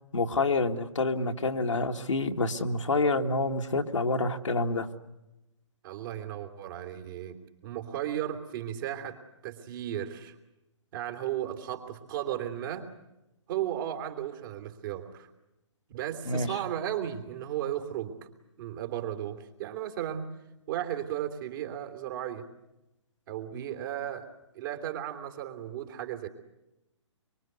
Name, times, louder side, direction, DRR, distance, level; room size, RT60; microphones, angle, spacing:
voice 1, 0.1-4.9 16.3-16.5, left 3 dB, 80° left, 4 dB, 2.0 m, -27 dB
voice 2, 5.8-7.4 7.6-9.2 9.4-10.3 10.9-12.9 13.5-15.3 15.9-18.2 18.6-20.3 20.7-22.5 23.3-24.3 24.5-26.3, right 11 dB, 45° right, 5 dB, 3.2 m, -35 dB
24.5 x 24.5 x 8.1 m, 0.93 s
figure-of-eight pair, 135°, 16 cm